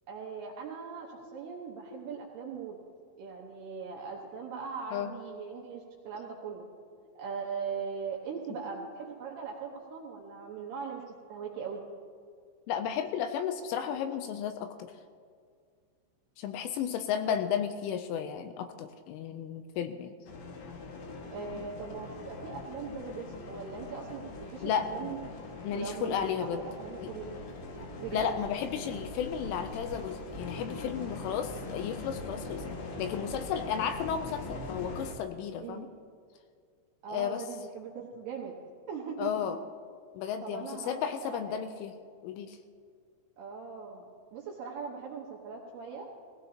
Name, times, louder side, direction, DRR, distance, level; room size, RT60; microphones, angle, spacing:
voice 1, 0.1-2.7 3.2-6.7 7.2-11.0 11.3-11.8 17.2-17.4 21.3-25.2 25.7-27.4 27.9-28.3 35.6-35.9 37.0-38.6 38.9-39.3 40.4-41.6 43.4-46.1, right 5 dB, 70° right, -2 dB, 2.5 m, -40 dB
voice 2, 12.7-14.9 16.4-20.1 24.6-24.9 25.6-26.7 27.0-27.1 28.1-32.7 33.0-35.9 37.1-37.4 39.2-39.6 40.2-41.9 42.2-42.6, left 8 dB, 85° left, 8 dB, 3.0 m, -33 dB
sound 1, 20.3-35.1, left 3 dB, 65° left, 2.3 m, -42 dB
19.5 x 16.5 x 2.9 m, 2.1 s
omnidirectional pair, 5.9 m